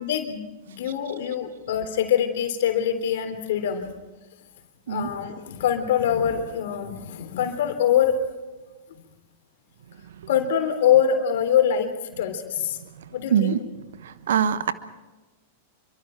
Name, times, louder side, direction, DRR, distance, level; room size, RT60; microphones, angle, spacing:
voice 1, 0.0-3.9 4.9-8.2 10.3-12.8 13.1-13.6, left 9 dB, 65° left, 6 dB, 3.5 m, -24 dB
voice 2, 13.3-13.6 14.0-14.7, right 9 dB, 70° right, 13 dB, 1.2 m, -23 dB
27.5 x 24.0 x 4.6 m, 1.2 s
hypercardioid pair, 100°, 0 cm